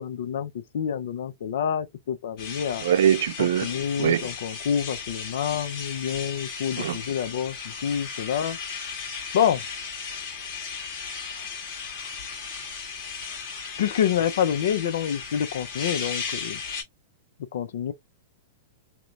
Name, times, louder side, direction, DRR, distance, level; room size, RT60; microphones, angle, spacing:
voice 1, 0.0-2.9 3.4-8.6 9.3-9.6 13.8-16.6 17.4-17.9, left 9 dB, 70° left, 0.4 m, -27 dB
sound 1, 2.4-16.8, left 6 dB, 50° left, 1.4 m, -36 dB
voice 2, 2.8-3.7 4.0-4.2 6.8-7.0, right 9 dB, 75° right, 0.3 m, -22 dB
2.9 x 2.0 x 2.3 m
hypercardioid pair, 130°, 0 cm